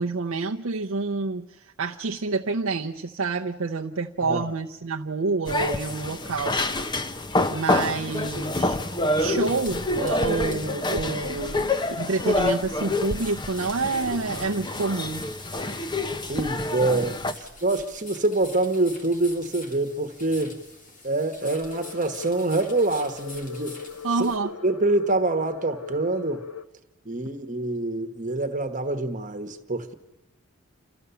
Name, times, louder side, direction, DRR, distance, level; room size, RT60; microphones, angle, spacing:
voice 1, 0.0-6.6 7.5-8.8 9.2-11.7 12.0-15.2 24.0-24.5, right 3 dB, 70° right, 0 dB, 0.6 m, -28 dB
sound 1, 5.5-17.3, left 2 dB, 20° left, 0.7 m, -27 dB
sound 2, 9.4-24.4, left 2 dB, 40° left, 2.0 m, -46 dB
voice 2, 16.3-20.6 21.0-23.8 24.2-24.3 24.6-26.4 27.0-29.9, right 2 dB, 35° right, 6 dB, 1.3 m, -26 dB
sound 3, 21.4-26.7, left 6 dB, 80° left, 0.8 m, -40 dB
29.5 x 13.0 x 6.9 m, 1.0 s
head